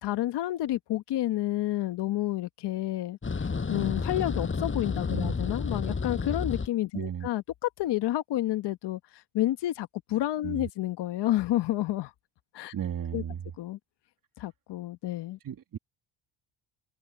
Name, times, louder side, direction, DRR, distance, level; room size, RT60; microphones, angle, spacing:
voice 1, 0.0-3.2 3.7-9.0 9.3-12.1 12.5-12.7 13.1-13.2 13.6-13.8 14.4-15.4, left 14 dB, 65° left, 1.4 m, -30 dB
sound 1, 3.2-6.7, left 4 dB, 25° left, 6.6 m, -31 dB
voice 2, 6.9-7.3 10.4-10.7 12.7-13.4 15.4-15.8, right 9 dB, 45° right, 2.8 m, -34 dB
open air
cardioid pair, 95°, 45 cm